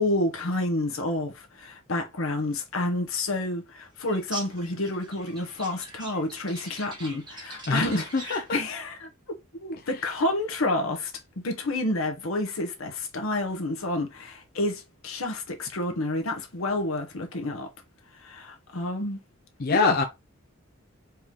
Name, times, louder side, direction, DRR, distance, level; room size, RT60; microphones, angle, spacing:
voice 1, 0.0-9.1 9.5-11.1 11.4-17.7 18.2-19.2 19.7-20.0, left 2 dB, 85° left, 1.1 m, -29 dB
sound 1, 4.1-8.6, right 2 dB, 20° right, 1.5 m, -42 dB
voice 2, 7.7-8.6 19.6-20.0, left 3 dB, 50° left, 0.5 m, -25 dB
4.6 x 3.0 x 3.5 m
head